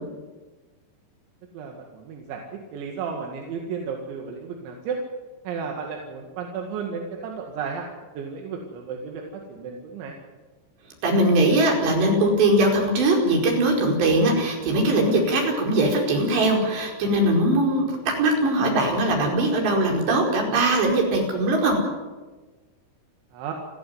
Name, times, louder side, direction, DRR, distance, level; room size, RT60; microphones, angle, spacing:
voice 1, 1.5-2.4 2.7-5.0 5.5-10.2 23.3-23.5, right 6 dB, 85° right, 1 dB, 4.4 m, -33 dB
voice 2, 11.0-21.8, right 1 dB, 70° right, 1 dB, 7.0 m, -21 dB
29.0 x 13.5 x 9.5 m, 1.3 s
omnidirectional pair, 5.2 m